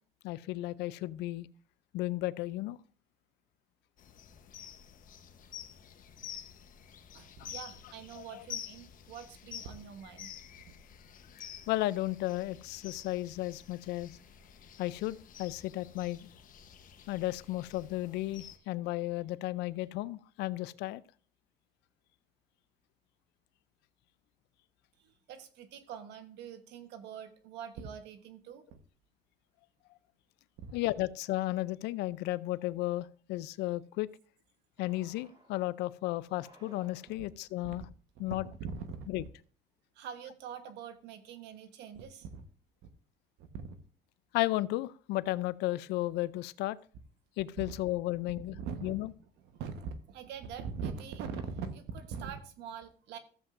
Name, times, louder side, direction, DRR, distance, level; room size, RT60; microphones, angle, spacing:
voice 1, 0.2-1.5 1.9-2.8 7.4-7.5 8.2-8.4 11.7-14.1 14.8-16.3 17.1-21.0 30.7-34.1 34.8-37.9 38.2-38.4 39.1-39.2 44.3-46.8 47.4-48.6 48.8-49.1, left 17 dB, 85° left, 18 dB, 0.4 m, -34 dB
sound 1, 4.0-18.6, left 9 dB, 55° left, 1.0 m, -49 dB
voice 2, 7.1-10.3 25.0-28.8 30.6-30.8 37.6-37.8 38.1-39.1 39.9-42.4 43.5-43.8 47.6-47.8 48.3-49.1 49.4-53.2, right 6 dB, 85° right, 9 dB, 1.2 m, -43 dB
sound 2, 34.8-35.6 36.2-37.4, right 2 dB, 30° right, 3.6 m, -60 dB
14.5 x 7.7 x 2.5 m, 0.42 s
cardioid pair, 110°, 17 cm